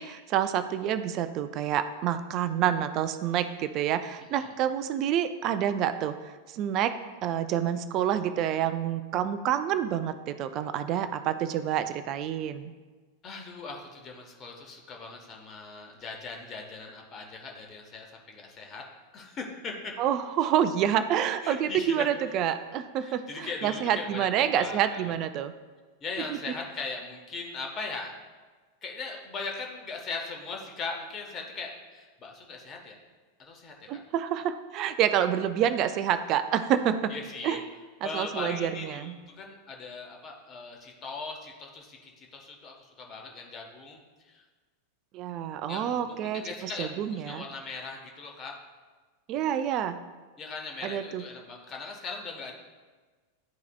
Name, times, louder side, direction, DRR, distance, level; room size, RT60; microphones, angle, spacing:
voice 1, 0.0-6.1 6.5-7.0 7.2-12.7 20.0-25.5 26.3-26.4 33.9-37.1 37.4-37.6 38.0-39.1 45.1-47.5 49.3-50.0 50.8-51.2, right 10 dB, 40° right, 11 dB, 0.4 m, -28 dB
voice 2, 4.2-4.5 13.2-18.8 19.1-19.9 21.4-22.1 23.0-25.1 26.0-28.1 28.8-33.0 33.4-34.0 37.1-37.6 38.0-44.4 45.7-48.6 50.4-52.5, left 4 dB, 30° left, 1 dB, 1.2 m, -39 dB
11.5 x 4.7 x 2.3 m, 1.4 s
figure-of-eight pair, 90°, 0 cm